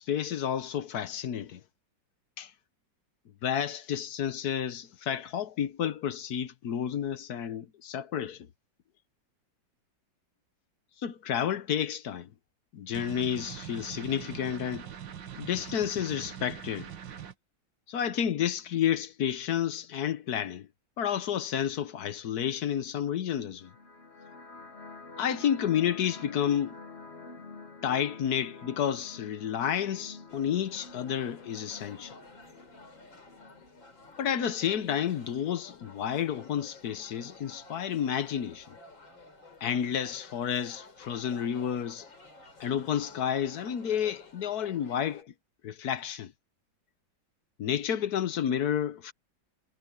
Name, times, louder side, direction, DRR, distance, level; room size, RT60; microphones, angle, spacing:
voice 1, 0.0-1.6 2.4-2.5 3.4-8.5 11.0-12.3 12.7-14.9 15.4-16.9 17.9-20.7 21.0-23.7 25.2-26.8 27.8-32.1 34.2-38.8 39.6-42.1 42.6-45.3 45.6-46.3 47.6-49.1, left 9 dB, 60° left, 1.3 m, -30 dB
sound 1, 12.9-17.3, right 9 dB, 75° right, 2.1 m, -42 dB
sound 2, 23.5-34.5, left 3 dB, 35° left, 1.6 m, -48 dB
sound 3, 30.3-45.2, left 3 dB, 85° left, 5.3 m, -52 dB
omnidirectional pair, 2.0 m